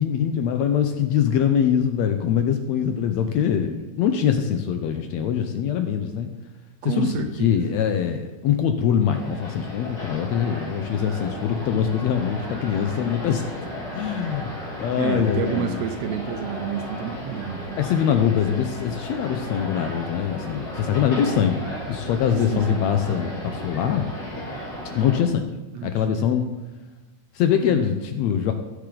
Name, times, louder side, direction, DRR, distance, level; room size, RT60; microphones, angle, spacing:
voice 1, 0.0-6.3 6.9-13.5 13.9-14.5 14.8-15.8 17.8-24.1 25.0-25.5 25.8-26.5 27.4-28.5, left 8 dB, 75° left, 7 dB, 1.7 m, -23 dB
voice 2, 6.8-7.8 14.9-17.8 22.3-22.9 25.7-26.2 27.7-28.2, right 9 dB, 85° right, 6 dB, 1.4 m, -30 dB
sound 1, 9.1-25.2, left 1 dB, 35° left, 2.5 m, -35 dB
15.0 x 6.6 x 3.8 m, 1.1 s
omnidirectional pair, 3.5 m